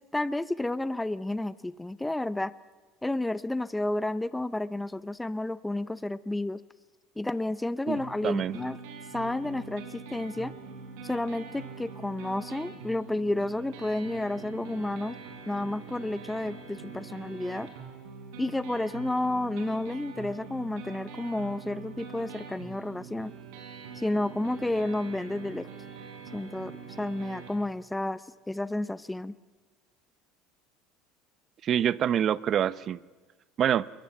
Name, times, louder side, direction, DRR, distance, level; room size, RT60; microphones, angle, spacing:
voice 1, 0.1-2.5 3.0-6.6 7.2-8.8 9.1-10.5 11.0-15.2 15.5-17.7 18.4-23.3 24.0-25.7 26.3-29.3, left 2 dB, 10° left, 16 dB, 0.7 m, -31 dB
sound 1, 8.0-27.5, right 5 dB, 80° right, 5.3 m, -44 dB
voice 2, 8.2-8.6 31.6-33.0 33.6-33.9, right 9 dB, 45° right, 19 dB, 0.7 m, -26 dB
22.0 x 22.0 x 7.8 m, 1.3 s
supercardioid pair, 110°, 0 cm